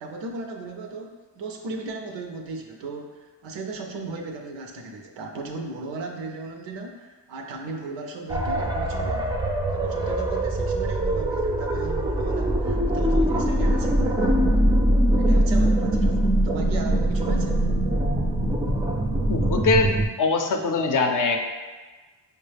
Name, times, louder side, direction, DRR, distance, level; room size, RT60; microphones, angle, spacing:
voice 1, 0.0-9.3 9.7-14.3 15.1-17.7, right 3 dB, 90° right, 3 dB, 0.6 m, -36 dB
sound 1, 8.3-20.1, right 1 dB, 10° right, 0.4 m, -22 dB
voice 2, 19.3-21.4, left 3 dB, 45° left, 4 dB, 0.5 m, -22 dB
4.6 x 2.2 x 3.3 m, 1.3 s
cardioid pair, 60°, 43 cm